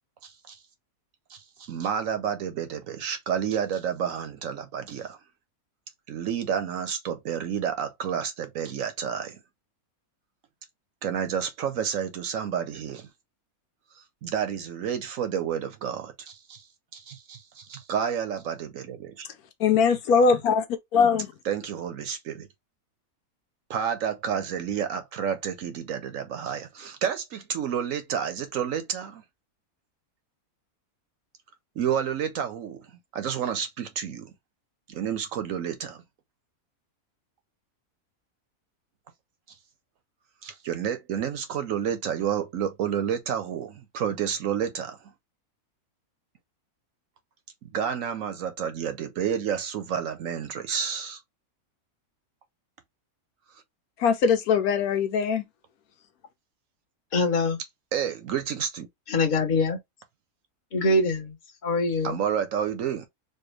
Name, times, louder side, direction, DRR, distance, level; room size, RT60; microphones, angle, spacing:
voice 1, 0.2-0.6 1.3-5.2 6.1-9.4 11.0-13.1 14.0-16.6 16.9-19.3 21.4-22.5 23.7-29.2 31.8-32.9 33.1-34.3 34.9-36.0 40.4-45.1 47.7-51.2 57.9-58.9 62.0-63.1, right 8 dB, 65° right, 1.0 m, -30 dB
voice 2, 19.6-20.6 20.9-21.3 54.0-55.4, left 6 dB, 80° left, 1.2 m, -21 dB
voice 3, 57.1-57.6 59.1-59.8 60.7-61.3 61.6-62.2, left 2 dB, 35° left, 1.1 m, -24 dB
4.4 x 2.4 x 3.2 m
omnidirectional pair, 1.6 m